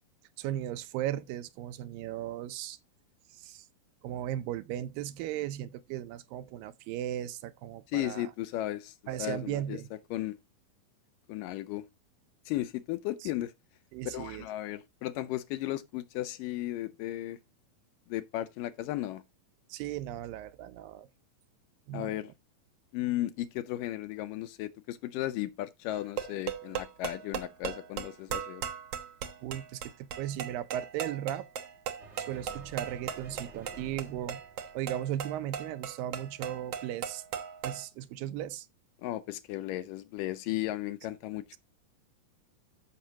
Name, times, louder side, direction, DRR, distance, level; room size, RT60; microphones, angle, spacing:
voice 1, 0.4-2.8 3.4-3.7 4.0-8.3 9.1-9.9 13.2-13.3 13.9-14.5 19.7-21.1 21.9-22.2 29.4-31.5 32.2-34.4 34.7-37.2 37.6-38.7, right 12 dB, 80° right, 2.3 m, -36 dB
voice 2, 7.9-9.8 10.1-10.4 11.3-11.8 12.5-13.5 14.1-17.4 18.1-19.2 21.9-22.3 22.9-28.6 39.0-41.6, left 15 dB, 80° left, 2.1 m, -35 dB
sound 1, 25.9-37.9, right 8 dB, 65° right, 1.6 m, -38 dB
sound 2, 32.0-35.5, right 2 dB, 40° right, 0.9 m, -53 dB
14.0 x 5.9 x 2.9 m
omnidirectional pair, 4.2 m